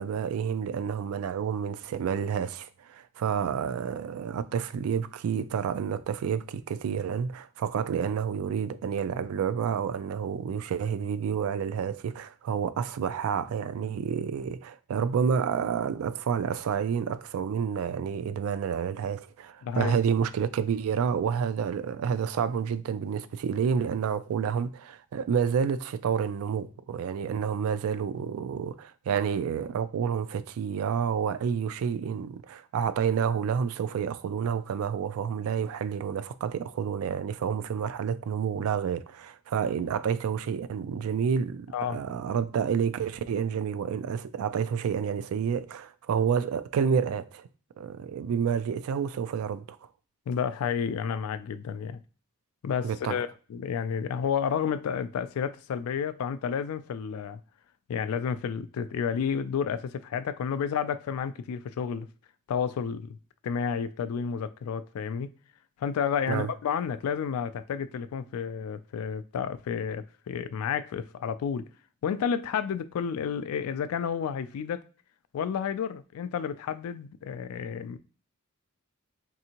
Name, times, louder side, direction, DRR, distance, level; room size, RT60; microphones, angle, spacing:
voice 1, 0.0-47.5 47.8-49.8 52.8-53.2 66.3-66.5, right 7 dB, 75° right, 0.3 m, -29 dB
voice 2, 19.6-19.9 41.7-42.0 50.3-52.0 52.6-57.4 57.9-62.1 62.5-63.2 63.4-65.3 65.8-71.7 72.0-74.8 75.3-78.0, left 7 dB, 80° left, 0.3 m, -31 dB
3.4 x 2.7 x 2.8 m
head